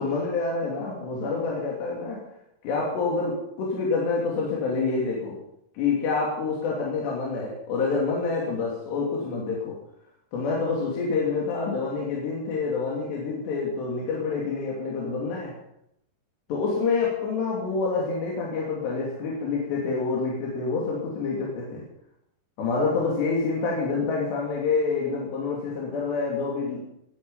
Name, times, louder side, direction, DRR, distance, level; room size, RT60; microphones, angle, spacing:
voice 1, 0.0-2.2 2.6-5.4 5.7-9.8 10.3-15.6 16.5-21.8 22.6-26.8, left 4 dB, 75° left, -3 dB, 5.1 m, -27 dB
19.0 x 12.0 x 5.7 m, 0.77 s
omnidirectional pair, 4.9 m